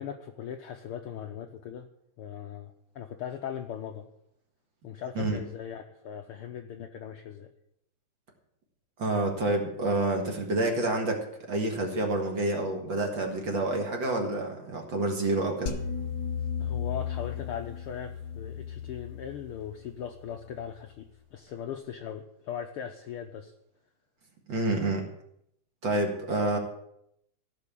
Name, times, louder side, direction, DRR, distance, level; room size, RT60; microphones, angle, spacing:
voice 1, 0.0-1.9 2.2-4.1 4.8-7.5 16.6-23.5, left 8 dB, 85° left, 5 dB, 1.2 m, -39 dB
voice 2, 9.0-15.7 24.5-25.1 25.8-26.6, right 2 dB, 45° right, 2 dB, 2.2 m, -28 dB
sound 1, 15.7-20.9, left 7 dB, 50° left, 1.2 m, -35 dB
15.0 x 6.1 x 8.4 m, 0.75 s
omnidirectional pair, 3.5 m